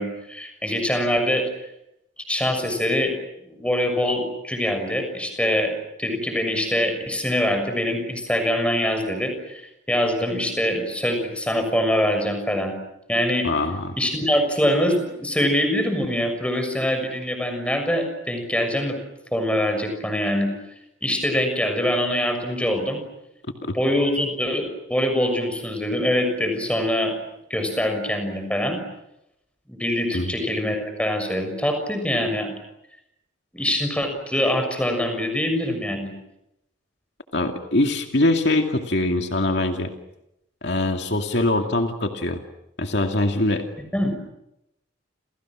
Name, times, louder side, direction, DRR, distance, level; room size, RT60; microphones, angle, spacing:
voice 1, 0.0-1.5 2.3-3.1 3.5-5.7 6.0-12.7 13.1-13.5 14.0-19.0 19.3-20.5 21.0-23.0 23.7-27.1 27.5-28.8 29.7-32.5 33.5-36.1 43.9-44.1, left 1 dB, 5° left, 6 dB, 6.5 m, -24 dB
voice 2, 13.4-14.0 23.6-23.8 30.1-30.3 37.3-39.9 40.6-42.4 42.8-43.7, left 2 dB, 60° left, 4 dB, 2.4 m, -23 dB
30.0 x 30.0 x 6.3 m, 0.83 s
head